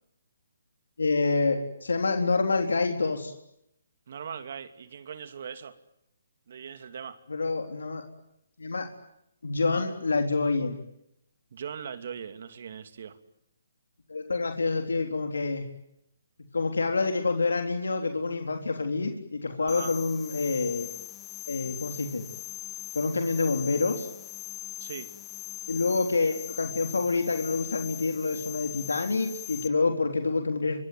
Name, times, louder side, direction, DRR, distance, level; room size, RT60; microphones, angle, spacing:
voice 1, 1.0-3.3 7.3-8.0 8.6-8.9 9.4-10.8 14.1-15.7 16.5-20.9 21.5-22.2 22.9-24.1 25.7-30.8, left 3 dB, 90° left, 4 dB, 3.7 m, -27 dB
voice 2, 4.1-5.8 6.5-7.2 11.5-13.2 19.5-20.0 24.8-25.1, right 7 dB, 55° right, 10 dB, 2.7 m, -40 dB
sound 1, 19.7-29.7, left 13 dB, 15° left, 1.8 m, -41 dB
25.5 x 24.5 x 9.5 m, 0.79 s
hypercardioid pair, 155°, 0 cm